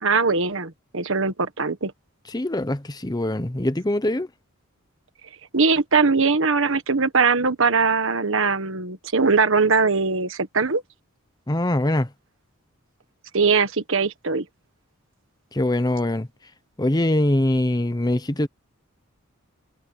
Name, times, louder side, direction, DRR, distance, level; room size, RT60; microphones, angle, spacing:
voice 1, 0.0-1.9 5.5-10.8 13.3-14.4, right 4 dB, 65° right, 1.5 m, -21 dB
voice 2, 2.3-4.3 11.5-12.1 15.5-16.3 16.8-18.5, left 1 dB, 20° left, 0.9 m, -23 dB
head